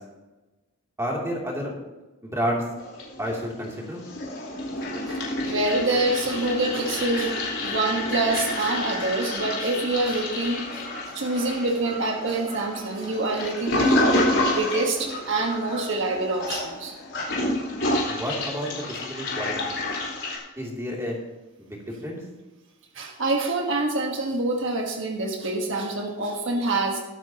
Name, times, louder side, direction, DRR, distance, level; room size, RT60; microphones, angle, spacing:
voice 1, 1.0-1.8 2.2-2.6 3.2-4.0 18.1-19.7 20.6-21.2 21.6-21.7 22.0-22.2, equal, 10° right, -3 dB, 2.8 m, -30 dB
Toilet flush, 2.8-3.6 3.9-20.4, left 1 dB, 55° left, 4.3 m, -29 dB
voice 2, 5.1-10.9 11.1-14.3 14.5-16.9 22.9-27.0, right 2 dB, 55° right, 1 dB, 1.4 m, -26 dB
22.0 x 9.1 x 2.9 m, 1.1 s
head